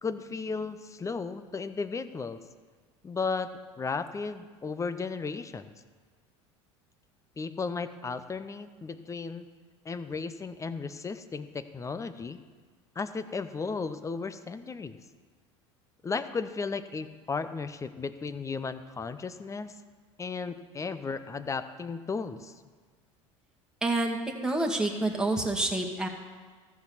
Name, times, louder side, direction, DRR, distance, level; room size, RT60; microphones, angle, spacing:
voice 1, 0.0-2.4 3.0-3.5 3.8-5.7 7.4-9.5 9.8-12.4 13.0-15.0 16.0-19.7 20.2-22.5, left 4 dB, 20° left, 12 dB, 0.8 m, -35 dB
voice 2, 23.8-24.2 24.4-26.1, right 2 dB, 5° right, -1 dB, 2.1 m, -27 dB
14.5 x 6.2 x 7.1 m, 1.5 s
hypercardioid pair, 85°, 15 cm